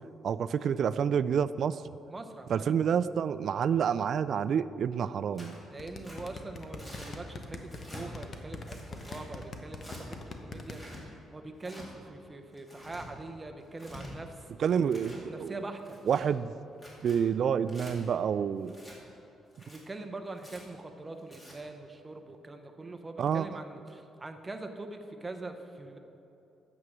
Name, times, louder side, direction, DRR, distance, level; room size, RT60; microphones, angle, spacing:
voice 1, 0.2-1.8 2.5-5.6 14.6-15.6 16.1-16.5 17.0-18.8 23.2-23.5, right 7 dB, 50° right, 15 dB, 0.3 m, -28 dB
voice 2, 2.1-2.6 5.7-14.5 14.8-16.0 19.6-26.0, right 2 dB, 15° right, 5 dB, 0.8 m, -43 dB
Tearing, 5.4-5.6 6.0-6.2 6.8-7.1 7.7-8.1 8.6-9.2 9.8-10.0 10.6-11.0 11.6-11.9 12.5-13.1 13.7-14.1 14.7-15.2 15.8-16.3 16.7-17.2 17.7-17.9 18.7-19.0 19.5-19.8 20.4-20.6 21.2-21.5, equal, 15° left, 2.2 m, -48 dB
sound 1, 5.8-10.8, left 4 dB, 35° left, 0.9 m, -41 dB
9.4 x 7.3 x 6.2 m, 2.9 s
cardioid pair, 135°, 0 cm